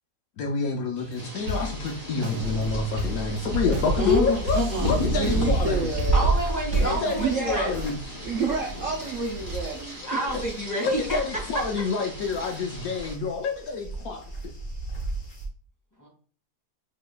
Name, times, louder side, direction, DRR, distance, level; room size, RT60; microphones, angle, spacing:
voice 1, 0.4-5.9 7.0-8.0 10.8-14.2, left 4 dB, 70° left, 3 dB, 1.0 m, -28 dB
sound 1, 1.0-7.2, left 3 dB, 80° right, 1.7 m, -33 dB
sound 2, 1.1-13.1, left 1 dB, 30° right, 1.8 m, -38 dB
sound 3, 2.4-10.6 10.9-15.4, right 2 dB, 40° left, 1.2 m, -31 dB
voice 2, 3.9-5.0 6.1-7.9 10.0-11.6 12.0-12.1 16.0-16.1, equal, 10° left, -2 dB, 1.5 m, -29 dB
voice 3, 5.1-6.3 6.7-7.6 8.2-10.2, right 4 dB, 65° right, -1 dB, 1.0 m, -29 dB
5.1 x 3.7 x 2.2 m, 0.43 s
omnidirectional pair, 1.7 m